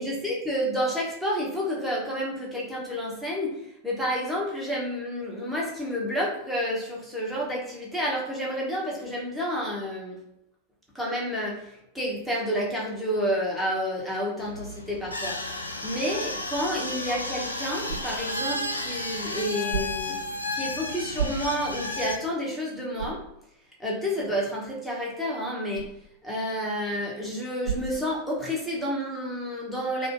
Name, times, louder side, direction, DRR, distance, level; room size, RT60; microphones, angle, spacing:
voice 1, 0.0-10.2 10.9-15.4 15.8-23.2 23.8-25.9 26.2-30.1, equal, ahead, -4 dB, 0.8 m, -30 dB
sound 1, 14.4-22.2, left 2 dB, 85° left, 0.3 m, -33 dB
sound 2, 17.1-28.7, right 6 dB, 55° right, 1.0 m, -40 dB
2.6 x 2.5 x 2.5 m, 0.79 s
figure-of-eight pair, 90°, 0 cm